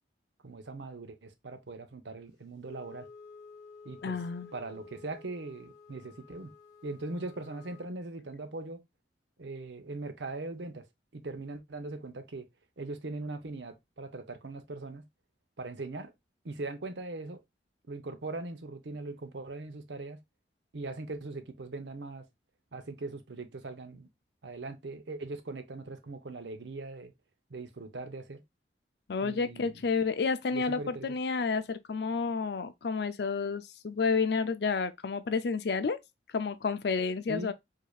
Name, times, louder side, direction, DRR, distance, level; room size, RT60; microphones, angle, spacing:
voice 1, 0.4-3.1 3.8-4.2 4.5-6.5 6.8-8.8 9.4-10.8 11.1-12.5 12.8-15.1 15.6-16.1 16.4-17.4 17.9-20.2 20.7-22.2 22.7-24.1 24.4-27.1 27.5-28.4 29.2-29.7 30.5-31.2 37.3-37.5, right 2 dB, 80° right, 0.8 m, -40 dB
Wind instrument woodwind instrument, 2.6-7.9, left 4 dB, 20° left, 1.5 m, -52 dB
voice 2, 4.0-4.5 29.1-36.0 36.3-37.5, left 4 dB, 65° left, 0.5 m, -30 dB
4.9 x 2.8 x 2.3 m
head